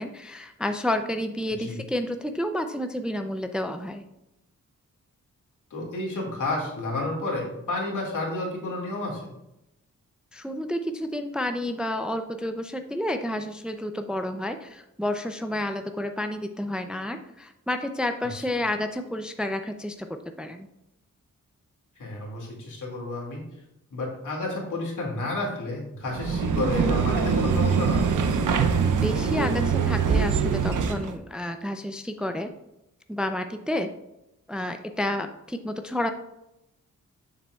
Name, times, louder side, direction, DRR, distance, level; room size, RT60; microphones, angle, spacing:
voice 1, 0.0-4.0 10.3-20.1 20.4-20.7 28.9-32.5 33.1-33.9 34.5-36.1, left 1 dB, 5° right, 7 dB, 0.4 m, -30 dB
voice 2, 5.7-9.2 18.4-18.5 22.0-23.4 23.9-28.0, left 2 dB, 80° left, -2 dB, 2.2 m, -31 dB
sound 1, 26.1-31.1, right 6 dB, 80° right, 0.6 m, -23 dB
7.2 x 6.6 x 2.3 m, 0.87 s
wide cardioid pair, 95°, 31 cm